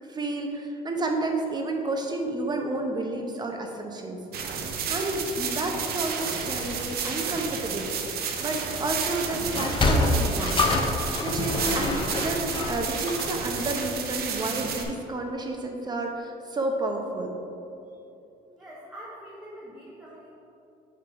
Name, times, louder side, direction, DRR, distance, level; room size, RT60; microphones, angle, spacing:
voice 1, 0.1-4.2 4.9-7.9 8.4-10.6 11.0-17.3, right 2 dB, 25° right, 3 dB, 0.9 m, -30 dB
sound 1, 4.3-14.8, right 6 dB, 65° right, 0.8 m, -31 dB
Sliding door, 9.4-14.1, left 2 dB, 30° left, 0.8 m, -26 dB
voice 2, 18.6-20.3, equal, 5° right, -7 dB, 1.0 m, -44 dB
8.1 x 3.7 x 4.7 m, 2.8 s
cardioid pair, 110°, 17 cm